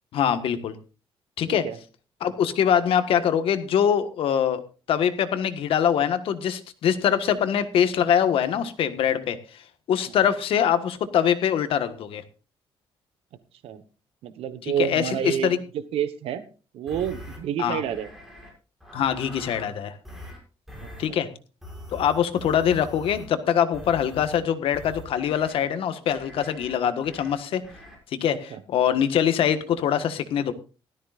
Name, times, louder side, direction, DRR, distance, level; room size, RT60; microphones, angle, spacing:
voice 1, 0.1-0.8 1.4-1.7 2.2-9.6 9.9-12.2 14.8-15.6 17.6-17.8 18.9-19.9 21.0-21.3 21.9-27.6 28.1-30.5, left 9 dB, 70° left, 10 dB, 1.5 m, -23 dB
voice 2, 1.5-1.8 10.1-10.2 13.6-13.8 14.2-16.4 16.7-18.1 20.8-21.2 28.5-28.6, right 9 dB, 85° right, 11 dB, 1.2 m, -29 dB
sound 1, 16.9-17.4 17.9-18.5 18.8-19.7 20.0-20.4 20.7-21.1 21.6-23.3 23.7-24.4 24.7-25.6 26.1-26.7 27.0-27.3 27.6-28.0, left 1 dB, ahead, 6.4 m, -42 dB
17.0 x 13.5 x 2.5 m, 0.34 s
cardioid pair, 150°, 10 cm